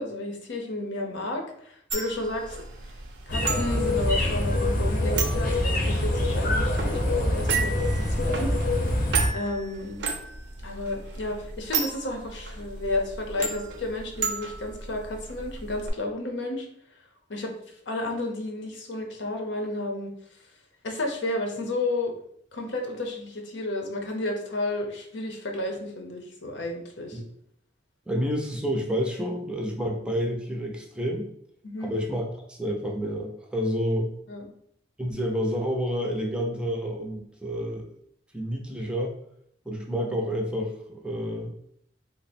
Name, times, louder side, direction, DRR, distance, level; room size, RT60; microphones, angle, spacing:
voice 1, 0.0-2.6 3.3-8.5 9.3-10.0 10.6-16.7 17.3-17.5 17.9-20.1 20.8-22.1 22.5-27.2 31.6-31.9 34.3-34.4, left 2 dB, 85° left, 3 dB, 0.7 m, -32 dB
sound 1, 1.9-15.9, right 5 dB, 70° right, 0.6 m, -34 dB
sound 2, 3.3-9.3, left 1 dB, 50° left, 0.7 m, -25 dB
voice 2, 28.1-31.3 31.8-34.1 35.0-37.9 38.3-39.1 39.7-41.5, equal, 5° right, 1 dB, 0.4 m, -29 dB
3.3 x 2.0 x 4.1 m, 0.70 s
head